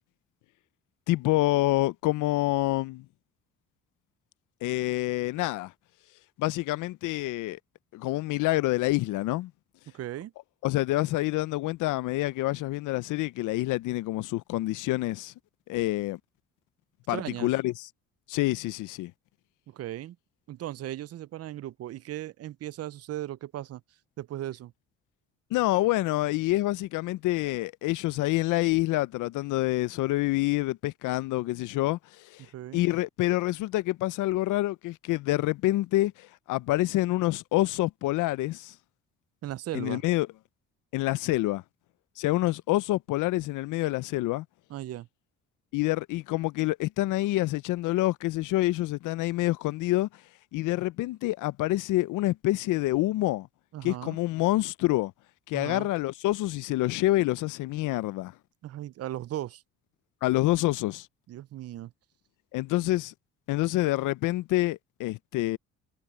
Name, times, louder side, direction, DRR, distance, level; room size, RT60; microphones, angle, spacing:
voice 1, 1.1-3.1 4.6-5.7 6.4-7.6 7.9-9.5 10.6-15.3 15.7-16.2 17.1-17.9 18.3-19.1 25.5-32.5 32.7-38.7 39.7-40.3 40.9-41.6 42.2-44.5 45.7-50.1 50.5-53.5 53.8-55.1 55.5-58.3 60.2-61.1 62.5-63.1 63.5-65.6, left 18 dB, 85° left, 0.5 m, -27 dB
voice 2, 9.9-10.3 17.1-17.5 19.7-20.2 20.5-23.8 24.2-24.7 32.4-32.8 39.4-40.0 44.7-45.1 53.7-54.2 55.5-55.9 58.6-59.6 61.3-61.9, right 13 dB, 55° right, 0.5 m, -37 dB
cardioid pair, 90°, 30 cm